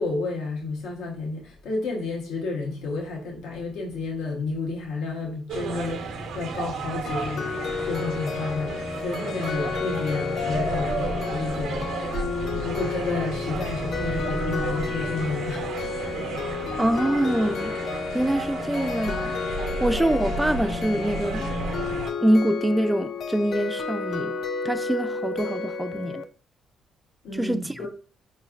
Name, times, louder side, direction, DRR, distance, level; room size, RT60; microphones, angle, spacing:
voice 1, 0.0-12.1 12.5-16.0 27.2-27.9, left 3 dB, 90° left, 1.0 m, -31 dB
sound 1, 5.5-22.1, right 3 dB, 90° right, 0.8 m, -32 dB
sound 2, 7.1-26.2, left 5 dB, 60° left, 0.4 m, -32 dB
voice 2, 16.8-17.8 18.1-19.4 19.8-21.5 22.2-24.4 24.6-26.2 27.3-27.9, right 1 dB, 10° right, 0.3 m, -25 dB
4.4 x 3.2 x 2.4 m
cardioid pair, 90°, 0 cm